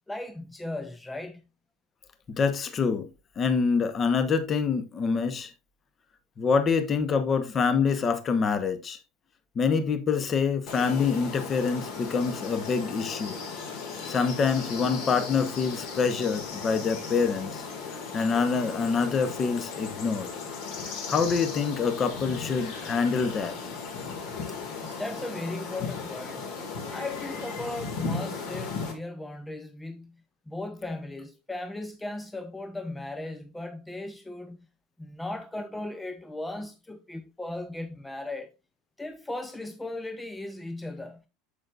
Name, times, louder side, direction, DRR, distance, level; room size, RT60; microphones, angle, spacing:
voice 1, 0.1-1.5 24.5-26.5 26.9-34.7 35.0-38.5 39.0-41.3, left 2 dB, 5° left, 0.4 m, -37 dB
voice 2, 2.3-3.1 3.4-5.5 6.4-9.0 9.6-13.4 14.1-17.7 18.1-20.3 20.8-23.6, left 5 dB, 25° left, 0.9 m, -26 dB
sound 1, 10.7-28.9, left 5 dB, 55° left, 1.9 m, -36 dB
8.5 x 6.6 x 2.4 m
supercardioid pair, 145°, 0 cm